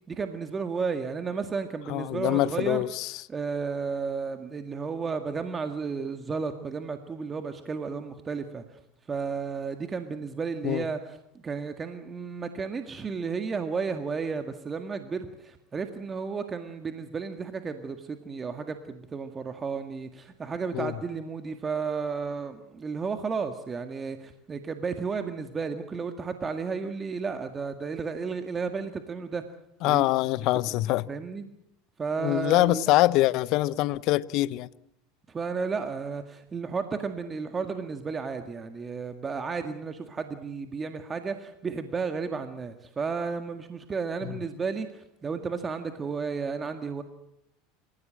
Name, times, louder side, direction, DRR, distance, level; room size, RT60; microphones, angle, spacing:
voice 1, 0.1-29.4 29.8-30.1 30.5-30.7 31.1-31.5 32.0-32.8 35.3-47.0, right 5 dB, 25° right, 1.9 m, -33 dB
voice 2, 1.9-3.1 10.6-10.8 20.7-20.9 29.8-31.0 32.2-34.7, left 17 dB, 55° left, 0.8 m, -24 dB
28.5 x 16.0 x 7.7 m
hypercardioid pair, 85°, 0 cm